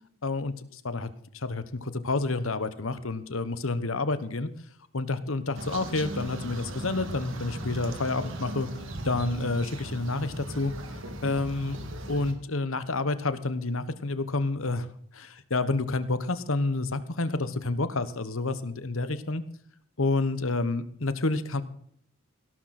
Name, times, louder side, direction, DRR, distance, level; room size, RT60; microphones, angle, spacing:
voice 1, 0.2-4.5 4.9-8.7 9.0-11.8 12.1-14.9 15.1-19.4 20.0-21.6, left 3 dB, 75° left, 13 dB, 1.3 m, -29 dB
sound 1, 5.5-12.3, right 1 dB, 65° right, 2.5 m, -38 dB
17.5 x 12.5 x 4.3 m, 0.62 s
head